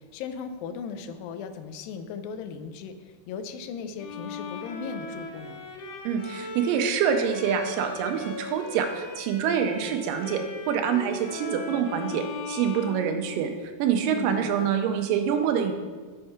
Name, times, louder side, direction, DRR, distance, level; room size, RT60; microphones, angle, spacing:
voice 1, 0.0-5.6 14.0-14.7, left 6 dB, 90° left, 9 dB, 2.3 m, -37 dB
Bowed string instrument, 4.0-13.8, left 3 dB, 70° left, 1.9 m, -39 dB
voice 2, 6.0-15.7, right 7 dB, 80° right, 6 dB, 2.2 m, -26 dB
6.4 x 4.4 x 5.7 m, 1.4 s
omnidirectional pair, 4.0 m